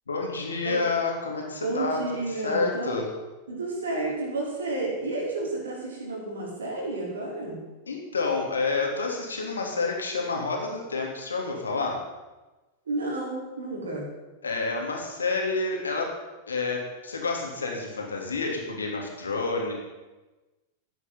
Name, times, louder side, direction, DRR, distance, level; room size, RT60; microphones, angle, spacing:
voice 1, 0.1-2.0 2.3-3.1 7.9-12.0 14.4-16.1 16.5-19.7, left 3 dB, 75° left, 0 dB, 2.9 m, -29 dB
voice 2, 1.6-2.9 3.5-7.6 12.9-14.0, right 2 dB, 70° right, -2 dB, 4.2 m, -31 dB
14.5 x 9.7 x 5.5 m, 1.1 s
figure-of-eight pair, 90°, 0 cm